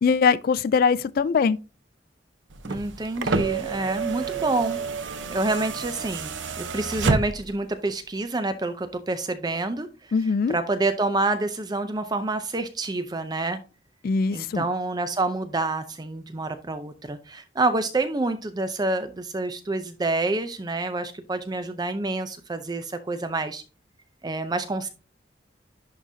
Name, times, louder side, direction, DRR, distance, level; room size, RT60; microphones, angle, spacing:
voice 1, 0.0-1.6 10.1-10.6 14.0-14.7, left 5 dB, 50° left, 0.3 m, -22 dB
sound 1, 2.5-7.6 8.8-8.9, right 4 dB, 90° right, 0.8 m, -29 dB
voice 2, 2.6-10.1 10.5-13.6 14.3-23.6 24.2-24.9, right 2 dB, 20° right, 0.5 m, -28 dB
11.0 x 3.9 x 2.7 m
head